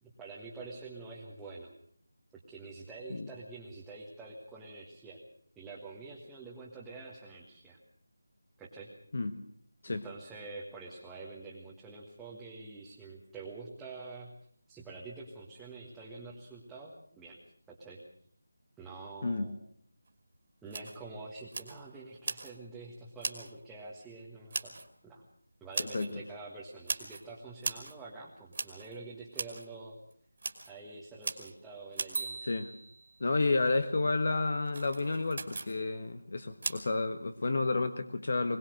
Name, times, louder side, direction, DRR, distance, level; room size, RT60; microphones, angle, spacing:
voice 1, 0.0-1.7 2.5-5.2 5.5-7.8 8.6-8.9 9.9-14.3 14.7-17.4 17.7-18.0 18.8-19.6 20.6-24.7 25.0-25.2 25.6-30.0 30.7-32.4, right 3 dB, 5° right, -6 dB, 1.5 m, -47 dB
sound 1, 20.1-20.2 20.7-21.0 21.5-21.8 22.2-22.6 23.2-23.5 24.5-24.9 25.7-26.1 26.9-27.2 27.6-28.0 28.5-29.0 29.3-29.7 30.1-30.2 30.4-30.7 31.2-31.5 31.9-33.2 34.7-35.8 36.6-36.8, right 3 dB, 45° right, 2.7 m, -38 dB
voice 2, 33.2-38.6, left 3 dB, 50° left, 9 dB, 1.3 m, -30 dB
22.0 x 18.5 x 6.4 m, 0.62 s
figure-of-eight pair, 170°, 0 cm